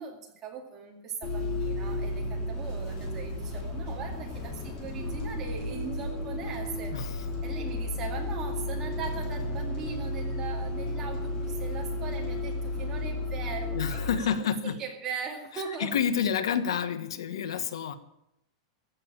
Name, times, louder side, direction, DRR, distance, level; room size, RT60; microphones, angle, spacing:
voice 1, 0.0-14.4 14.6-15.9, right 6 dB, 20° right, 0 dB, 2.3 m, -40 dB
Bus, 1.2-14.1, left 2 dB, 25° left, 3.0 m, -33 dB
voice 2, 6.9-7.3 13.7-14.8 15.8-17.9, left 7 dB, 90° left, 11 dB, 1.3 m, -29 dB
15.0 x 7.0 x 8.7 m, 0.82 s
supercardioid pair, 180°, 3 cm